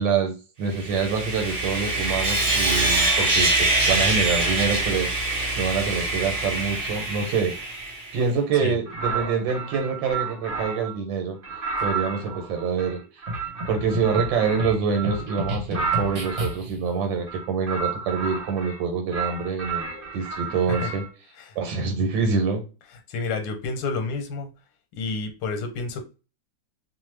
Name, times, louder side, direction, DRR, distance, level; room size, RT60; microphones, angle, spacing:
voice 1, 0.0-7.8 8.1-11.4 11.8-13.0 13.7-21.0 21.6-22.6, right 5 dB, 90° right, 4 dB, 1.4 m, -26 dB
Sawing, 0.7-8.2, right 2 dB, 75° right, 0.4 m, -24 dB
sound 1, 8.9-11.0 11.4-16.5 17.2-18.8 19.1-21.1, right 5 dB, 40° right, 0.8 m, -32 dB
sound 2, 13.3-16.9, equal, 60° right, 1.2 m, -32 dB
voice 2, 23.1-24.5 24.9-26.0, left 4 dB, 80° left, 5 dB, 1.4 m, -29 dB
3.0 x 2.1 x 3.1 m, 0.31 s
omnidirectional pair, 2.0 m